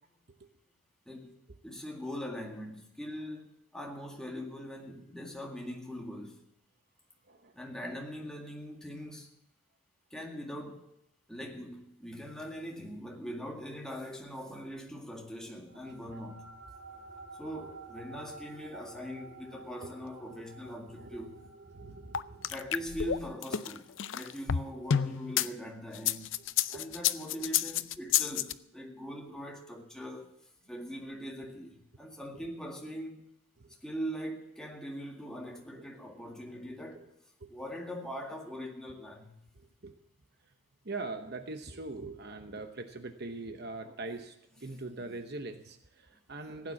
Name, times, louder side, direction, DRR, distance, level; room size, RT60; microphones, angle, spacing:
voice 1, 1.1-6.4 7.5-9.3 10.1-10.9 11.3-16.6 17.4-21.4 22.5-26.4 26.7-30.3 30.7-33.2 33.8-37.0 37.5-39.4, equal, 5° left, 2.0 m, -41 dB
voice 2, 7.2-7.6 10.1-10.2 16.1-16.2 19.8-19.9 20.3-22.6 26.7-27.0 33.6-33.8 35.7-35.8 36.9-37.0 37.4-37.5 39.5-39.9 40.4-40.5 40.8-46.7, right 3 dB, 45° right, 0.9 m, -43 dB
sound 1, 15.7-26.5, right 3 dB, 70° right, 3.1 m, -52 dB
sound 2, 22.1-25.5 25.9-28.5, left 9 dB, 60° left, 0.5 m, -29 dB
16.0 x 9.4 x 7.0 m
head